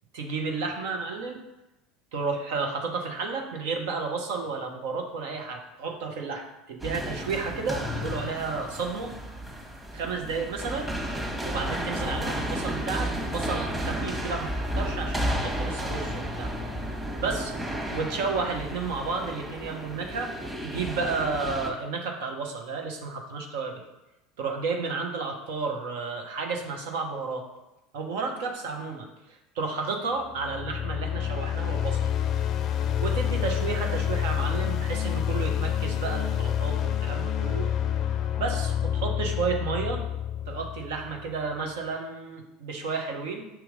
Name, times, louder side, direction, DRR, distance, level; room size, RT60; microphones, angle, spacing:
voice 1, 0.1-1.4 2.1-9.1 9.9-10.9 11.4-16.5 17.2-17.5 17.9-20.3 20.6-23.8 24.4-27.4 27.9-32.1 33.0-37.7 38.4-40.0 40.5-43.5, right 4 dB, 70° right, 2 dB, 1.0 m, -32 dB
sound 1, 6.8-21.7, equal, 10° right, 1.4 m, -32 dB
sound 2, 30.3-41.4, left 9 dB, 50° left, 0.4 m, -28 dB
6.1 x 3.0 x 5.2 m, 0.96 s
hypercardioid pair, 80°, 0 cm